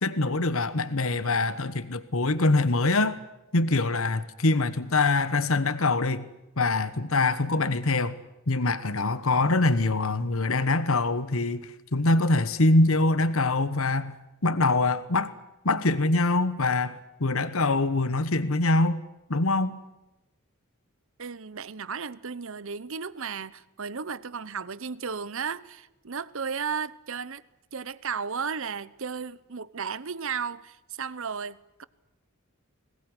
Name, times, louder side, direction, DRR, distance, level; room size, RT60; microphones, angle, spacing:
voice 1, 0.0-3.2 3.5-6.3 6.6-8.1 8.5-14.1 14.4-15.3 15.6-19.0 19.3-19.8, left 2 dB, 70° left, 1.2 m, -24 dB
voice 2, 21.2-27.4 27.7-31.8, right 6 dB, 65° right, 0.9 m, -34 dB
22.0 x 19.5 x 9.8 m
head